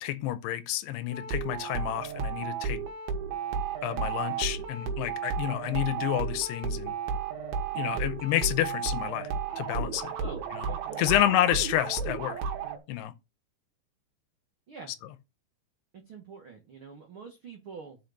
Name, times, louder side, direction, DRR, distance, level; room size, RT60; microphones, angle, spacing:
voice 1, 0.0-2.8 3.8-6.9 7.7-9.3 9.6-10.1 11.0-12.4 12.9-13.1, left 13 dB, 80° left, 2.7 m, -29 dB
sound 1, 1.1-12.8, right 6 dB, 70° right, 3.0 m, -33 dB
voice 2, 10.2-11.1 14.7-14.9 15.9-18.0, right 5 dB, 85° right, 1.1 m, -45 dB
5.8 x 5.6 x 6.5 m
omnidirectional pair, 4.8 m